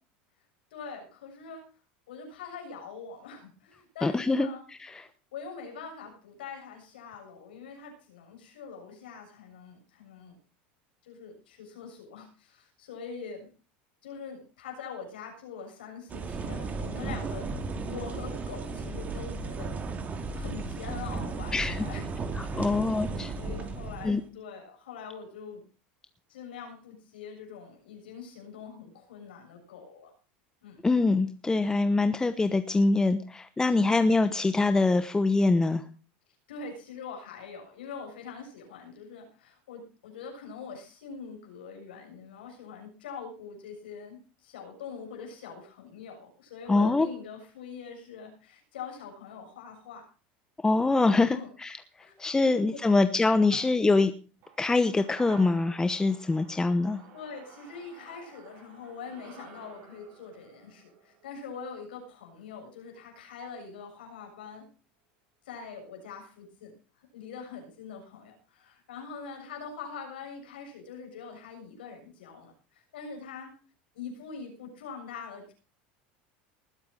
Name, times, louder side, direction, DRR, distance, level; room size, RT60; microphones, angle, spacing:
voice 1, 0.7-1.7 2.1-4.7 5.3-10.4 11.0-13.5 14.0-19.7 20.3-22.1 22.5-23.0 23.4-25.6 26.3-30.1 30.6-30.8 33.7-33.9 36.5-50.0 51.3-51.5 52.0-52.1 52.5-53.0 53.5-53.6 57.1-64.7 65.5-73.5 73.9-75.5, left 6 dB, 85° left, 2 dB, 7.1 m, -43 dB
voice 2, 4.0-5.0 21.5-21.8 22.4-23.3 24.0-24.2 30.8-35.8 46.7-47.1 50.6-51.8 52.2-54.1 54.6-57.0, left 3 dB, 10° left, 10 dB, 1.0 m, -24 dB
sound 1, 16.1-24.3, right 3 dB, 30° right, 2.6 m, -35 dB
sound 2, 54.4-62.9 63.2-63.3, right 7 dB, 55° right, 7.6 m, -53 dB
19.5 x 8.6 x 5.4 m, 0.36 s
supercardioid pair, 105°, 5 cm